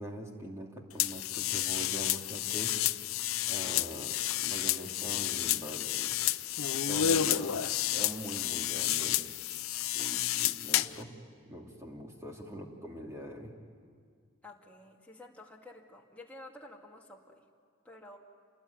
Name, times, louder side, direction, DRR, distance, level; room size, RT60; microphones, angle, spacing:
voice 1, 0.0-2.8 3.5-6.1 6.7-9.2 9.9-11.2 11.4-13.6, right 1 dB, 15° right, 0 dB, 2.7 m, -43 dB
sound 1, 1.0-11.0, left 12 dB, 85° left, 0.6 m, -31 dB
voice 2, 14.4-17.4 17.8-18.2, left 2 dB, 5° left, -2 dB, 2.2 m, -51 dB
28.0 x 20.5 x 9.5 m, 2.1 s
head